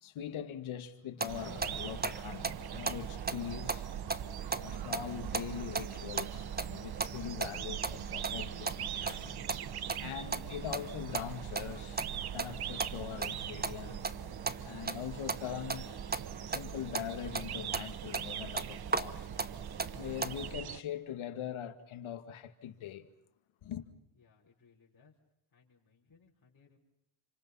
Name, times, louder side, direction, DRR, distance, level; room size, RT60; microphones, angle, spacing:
voice 1, 0.0-3.9 4.5-9.4 10.0-14.1 14.6-16.0 16.5-19.3 19.9-23.1 23.6-23.8, left 10 dB, 85° left, 2.3 m, -42 dB
sound 1, 1.2-20.5, right 4 dB, 20° right, 1.3 m, -39 dB
sound 2, 1.3-20.8, right 10 dB, 50° right, 0.9 m, -42 dB
voice 2, 24.1-25.1 25.5-26.8, left 5 dB, 45° left, 5.9 m, -65 dB
29.0 x 26.5 x 5.7 m
cardioid pair, 85°, 48 cm